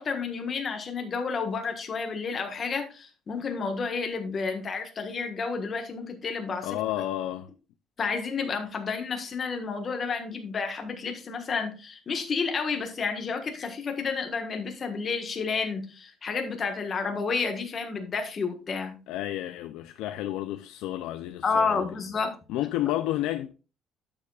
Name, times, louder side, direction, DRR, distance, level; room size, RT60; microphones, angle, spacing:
voice 1, 0.0-6.8 8.0-19.0 21.4-22.3, left 5 dB, 30° left, 1.5 m, -30 dB
voice 2, 6.6-7.5 19.1-21.8 22.5-23.5, left 14 dB, 80° left, 0.5 m, -31 dB
12.0 x 7.1 x 2.4 m
cardioid pair, 160°, 0 cm